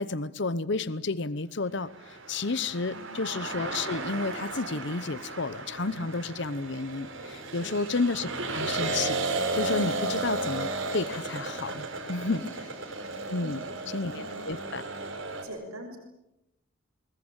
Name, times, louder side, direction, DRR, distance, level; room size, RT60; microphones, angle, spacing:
voice 1, 0.0-9.2 9.5-12.4 13.3-13.6 13.9-14.8, left 3 dB, 55° left, 16 dB, 0.9 m, -31 dB
sound 1, 2.0-15.4, right 2 dB, 65° right, 4.9 m, -34 dB
voice 2, 2.9-3.3 7.4-7.8 12.2-12.5 13.4-14.8 15.4-16.0, equal, 90° right, 3 dB, 6.1 m, -44 dB
25.0 x 21.0 x 8.9 m, 0.89 s
head